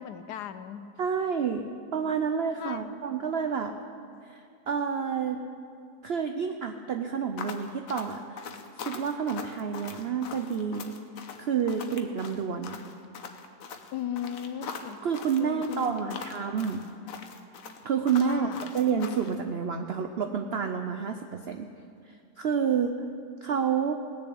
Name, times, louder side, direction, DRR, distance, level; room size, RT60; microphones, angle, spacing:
voice 1, 0.0-0.9 2.6-3.0 13.9-15.0 15.4-16.2 18.2-18.7, left 9 dB, 75° left, 11 dB, 1.2 m, -37 dB
voice 2, 1.0-1.7 1.9-3.7 4.2-5.4 6.0-8.4 8.8-10.9 11.4-12.8 15.0-16.8 17.8-18.5 18.7-21.7 22.4-23.0 23.4-24.0, right 6 dB, 75° right, 6 dB, 0.5 m, -29 dB
sound 1, 7.4-19.4, left 6 dB, 60° left, 1.2 m, -42 dB
18.5 x 6.9 x 8.3 m, 2.4 s
omnidirectional pair, 1.9 m